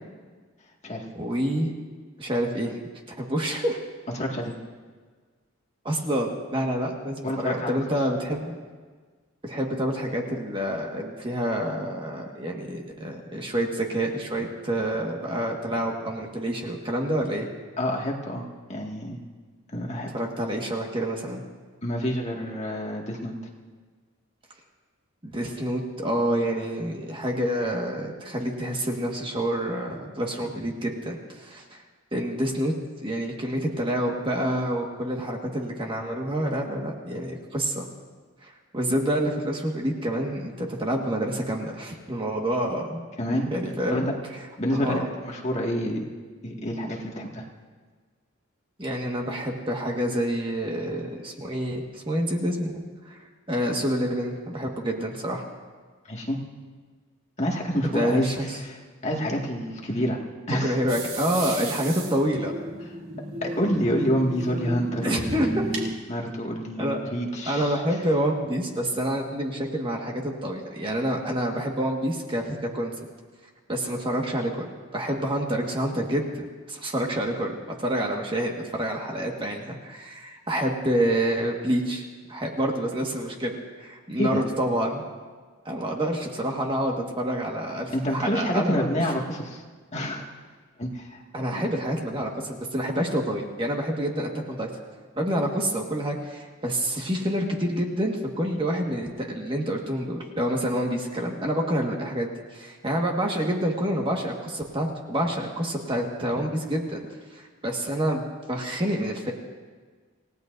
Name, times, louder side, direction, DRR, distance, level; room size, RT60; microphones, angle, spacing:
voice 1, 1.1-1.7 2.2-2.8 3.2-3.8 5.8-8.5 9.4-17.5 20.1-21.4 25.2-31.8 32.1-32.7 33.0-37.9 38.4-43.0 43.5-44.1 44.7-45.1 48.8-53.2 53.5-55.4 57.9-58.4 60.6-62.5 65.0-65.6 66.8-67.0 67.5-72.9 73.7-82.0 82.3-85.0 85.6-89.1 91.3-94.7 95.2-107.0 107.3-109.3, right 1 dB, 25° right, 0 dB, 1.6 m, -28 dB
voice 2, 4.2-4.5 7.2-7.7 17.8-19.2 19.7-20.1 21.8-23.3 43.2-43.5 43.9-44.1 44.6-46.0 46.4-47.4 56.1-56.4 57.4-58.3 58.6-58.8 59.0-60.2 60.5-60.8 63.4-67.7 84.2-84.4 87.9-89.6 89.9-90.2 90.8-91.2 91.5-91.6, equal, 30° left, -1 dB, 2.0 m, -28 dB
sound 1, 60.9-65.9, right 1 dB, 85° right, 3.0 m, -34 dB
28.0 x 17.5 x 2.7 m, 1.5 s
head